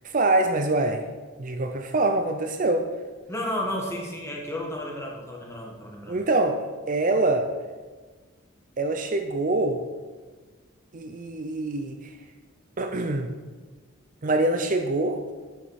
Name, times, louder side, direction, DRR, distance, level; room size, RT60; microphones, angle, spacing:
voice 1, 0.0-1.0 1.4-2.9 6.1-6.6 6.9-7.5 8.8-9.8 10.9-12.1 12.8-13.3 14.2-15.2, right 2 dB, 40° right, 6 dB, 0.6 m, -24 dB
voice 2, 3.3-6.2, left 1 dB, 15° left, -1 dB, 1.5 m, -32 dB
9.8 x 7.0 x 4.7 m, 1.4 s
head